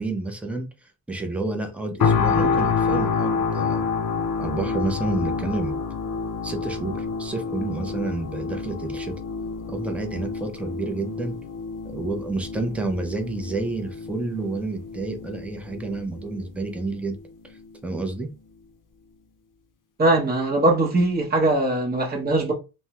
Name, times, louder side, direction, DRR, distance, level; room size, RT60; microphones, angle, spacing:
voice 1, 0.0-3.8 4.4-5.8 6.4-9.2 9.7-11.4 11.9-17.2 17.4-18.3, right 2 dB, 5° right, 0.4 m, -30 dB
sound 1, 2.0-17.0 17.5-17.7, left 5 dB, 60° left, 0.5 m, -28 dB
voice 2, 20.0-22.5, right 2 dB, 25° right, 0.8 m, -21 dB
3.4 x 2.1 x 2.8 m
wide cardioid pair, 175°, 37 cm